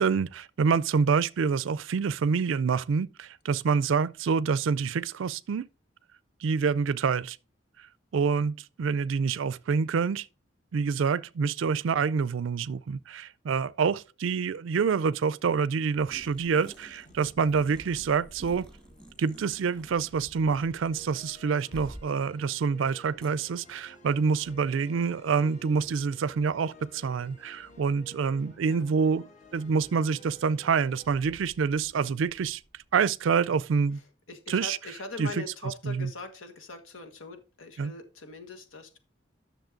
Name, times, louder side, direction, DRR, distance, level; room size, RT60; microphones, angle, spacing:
voice 1, 0.0-5.7 6.4-7.4 7.8-7.9 8.1-10.3 10.7-18.7 19.2-29.2 29.5-32.6 32.9-34.0 34.5-34.8 35.2-35.3 35.8-36.1 37.8-37.9, right 5 dB, 75° right, 0.4 m, -27 dB
sound 1, 16.0-33.6, equal, 35° left, 1.2 m, -53 dB
sound 2, 16.1-17.2 17.5-20.3 20.5-20.7 21.7-22.1 23.2-23.3, right 1 dB, 5° left, 1.2 m, -49 dB
voice 2, 33.9-39.0, left 3 dB, 85° left, 1.5 m, -42 dB
10.5 x 6.6 x 3.8 m
head